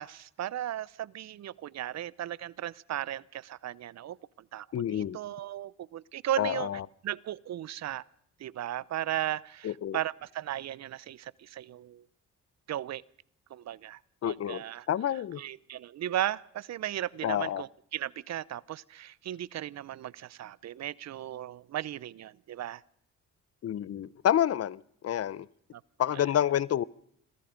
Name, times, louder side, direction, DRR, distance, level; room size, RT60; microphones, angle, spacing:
voice 1, 0.0-4.2 4.5-6.7 7.0-8.0 8.4-12.0 12.7-13.0 13.5-14.9 15.4-22.8 25.7-25.8 26.1-26.2, right 12 dB, 60° right, 0.8 m, -36 dB
voice 2, 4.7-5.2 6.4-6.8 9.6-10.0 14.2-15.4 17.2-17.6 23.6-25.5 26.0-26.8, left 10 dB, 55° left, 0.7 m, -29 dB
27.0 x 21.0 x 5.2 m
cardioid pair, 90°, 30 cm